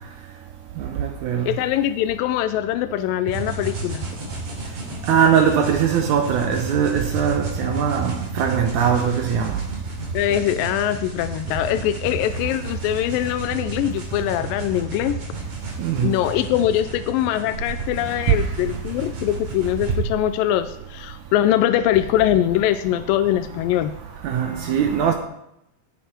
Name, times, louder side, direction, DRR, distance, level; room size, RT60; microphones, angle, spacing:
voice 1, 0.8-1.5 5.1-9.5 15.8-16.1 24.2-25.1, right 8 dB, 85° right, 1.7 m, -21 dB
voice 2, 1.5-4.0 10.1-15.2 16.0-23.9, left 12 dB, 85° left, 2.0 m, -22 dB
sound 1, 3.3-20.0, right 3 dB, 45° right, 4.0 m, -31 dB
17.5 x 7.2 x 4.5 m
omnidirectional pair, 4.6 m